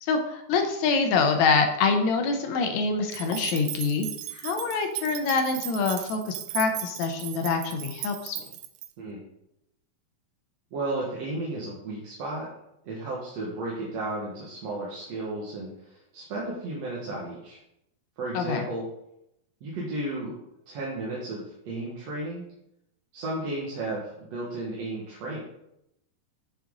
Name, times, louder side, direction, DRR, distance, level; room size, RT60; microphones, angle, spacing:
voice 1, 0.0-4.1 4.3-8.5 18.3-18.6, left 4 dB, 70° left, 5 dB, 1.9 m, -25 dB
sound 1, 3.1-8.9, right 13 dB, 80° right, 1.7 m, -37 dB
voice 2, 10.7-12.5 12.8-17.6 18.2-18.8 19.6-20.4 20.7-22.4 23.1-25.4, right 2 dB, 60° right, -5 dB, 2.4 m, -33 dB
7.2 x 6.6 x 3.8 m, 0.81 s
omnidirectional pair, 3.7 m